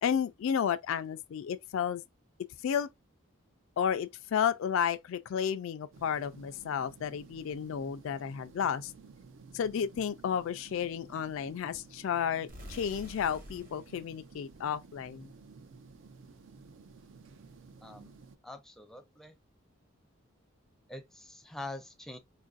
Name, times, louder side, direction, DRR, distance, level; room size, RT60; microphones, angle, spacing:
voice 1, 0.0-2.0 2.6-2.9 3.8-8.9 9.5-15.3, left 8 dB, 65° left, 0.3 m, -32 dB
sound 1, 5.9-18.4, right 4 dB, 60° right, 0.4 m, -54 dB
sound 2, 12.5-15.3, equal, 40° right, 1.1 m, -50 dB
voice 2, 17.8-18.1 18.4-19.3 20.9-22.2, left 2 dB, ahead, 0.5 m, -44 dB
4.5 x 2.5 x 2.3 m
head